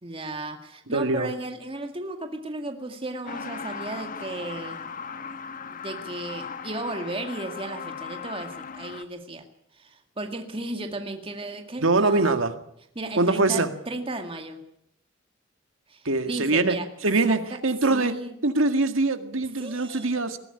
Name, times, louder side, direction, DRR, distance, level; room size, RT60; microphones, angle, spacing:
voice 1, 0.0-4.8 5.8-9.4 9.8-12.5 13.0-14.6 15.9-16.8 17.2-17.4 17.9-18.3 19.6-20.1, right 2 dB, 25° right, 5 dB, 2.0 m, -35 dB
voice 2, 0.9-1.3 11.8-12.5 13.1-13.7 16.1-16.8 17.0-20.4, right 3 dB, 90° right, 8 dB, 2.0 m, -23 dB
Truck, 3.3-9.0, left 5 dB, 45° left, 1.2 m, -37 dB
21.0 x 15.0 x 9.8 m, 0.74 s
head